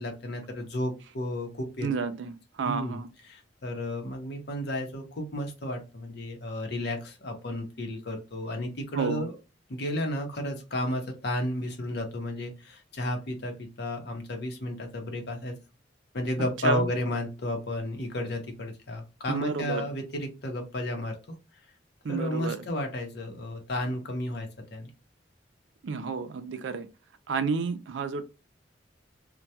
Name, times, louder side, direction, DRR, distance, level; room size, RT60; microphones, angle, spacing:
voice 1, 0.0-1.9 2.7-3.0 3.3-9.3 9.7-15.6 16.1-21.2 22.1-24.9, left 1 dB, 60° left, 0.7 m, -32 dB
voice 2, 1.8-3.1 8.9-9.3 16.6-16.9 19.3-19.9 22.0-22.7 25.8-26.9 27.3-28.2, right 5 dB, 80° right, 0.4 m, -31 dB
2.2 x 2.2 x 2.7 m
head